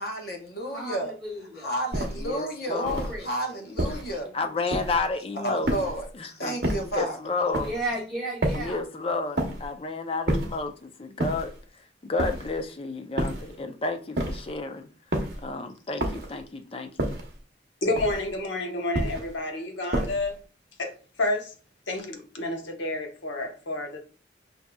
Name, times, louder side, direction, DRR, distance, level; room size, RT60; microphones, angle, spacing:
voice 1, 0.0-1.1 1.5-2.8 3.2-4.4 5.3-6.1 6.4-7.2, right 1 dB, 55° left, 0.9 m, -31 dB
voice 2, 0.7-1.7 2.7-3.3 7.5-8.8, equal, ahead, 0.9 m, -33 dB
sound 1, 1.9-2.3 2.8-3.2 3.8-4.2 4.7-5.1 5.6-6.1 6.6-7.0 7.5-7.9 8.4-8.8 9.4-9.7 10.3-10.7 11.2-11.6 12.2-12.6 13.2-13.6 14.2-14.6 15.1-15.5 16.0-16.4 17.0-17.4 18.0-18.4 18.9-19.4 19.9-20.3, right 1 dB, 55° right, 0.8 m, -29 dB
voice 3, 2.2-3.1 4.3-7.7 8.5-11.5 12.0-14.9 15.4-17.1, left 3 dB, 30° left, 0.4 m, -31 dB
voice 4, 17.8-20.4 20.8-21.5 21.9-24.0, left 2 dB, 90° left, 1.0 m, -30 dB
6.0 x 2.7 x 2.2 m
head